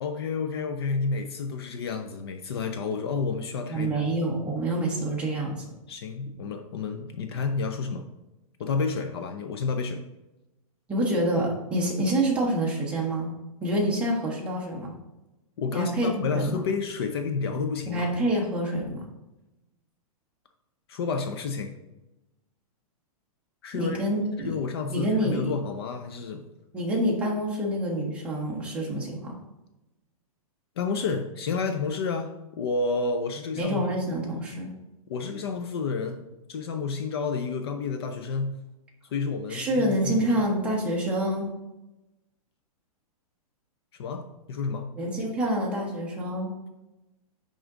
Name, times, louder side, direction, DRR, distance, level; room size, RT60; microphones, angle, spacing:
voice 1, 0.0-4.0 5.9-8.1 8.6-10.0 15.6-18.1 20.9-21.7 23.6-24.0 24.4-26.5 30.8-33.8 35.1-36.2 36.5-38.5 39.1-40.4 43.9-44.9, left 4 dB, 45° left, 7 dB, 0.5 m, -30 dB
voice 2, 3.7-5.7 10.9-13.3 13.6-14.9 15.7-16.1 16.3-16.6 17.9-19.0 23.7-24.6 24.9-25.4 26.7-29.3 33.6-34.7 39.5-41.5 45.0-46.5, right 1 dB, 5° right, -3 dB, 1.0 m, -27 dB
10.0 x 3.7 x 3.7 m, 0.99 s
hypercardioid pair, 170°, 19 cm